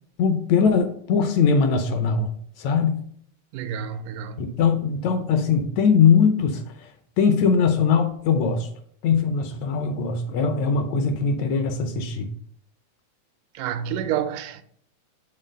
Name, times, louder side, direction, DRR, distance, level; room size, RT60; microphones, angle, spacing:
voice 1, 0.2-2.3 2.6-3.0 4.4-6.6 7.2-8.7 9.0-12.3, left 6 dB, 75° left, 1.8 m, -21 dB
voice 2, 3.5-4.6 13.6-14.6, right 9 dB, 90° right, 2.1 m, -29 dB
6.7 x 3.8 x 5.1 m
omnidirectional pair, 3.5 m